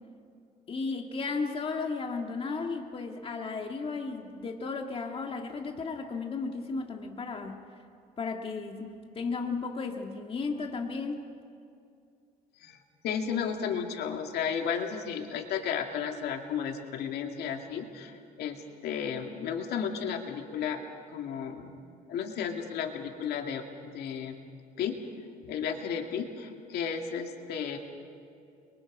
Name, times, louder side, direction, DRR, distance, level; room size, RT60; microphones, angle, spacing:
voice 1, 0.7-7.6 8.2-11.2, left 4 dB, 35° left, 3 dB, 1.9 m, -34 dB
voice 2, 13.0-20.8 21.1-21.7 22.1-23.6 23.9-24.4 24.8-25.0 25.5-27.8, left 7 dB, 75° left, 3 dB, 2.4 m, -33 dB
30.0 x 23.5 x 5.3 m, 2.5 s
cardioid pair, 110°, 17 cm